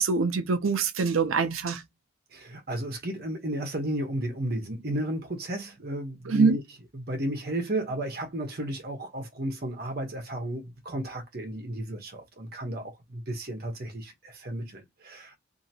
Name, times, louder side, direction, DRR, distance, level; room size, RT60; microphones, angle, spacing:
voice 1, 0.0-1.8 6.3-6.6, right 4 dB, 90° right, 0.6 m, -24 dB
voice 2, 2.3-6.6 6.9-15.3, right 1 dB, 50° right, 1.0 m, -33 dB
2.8 x 2.7 x 2.7 m
head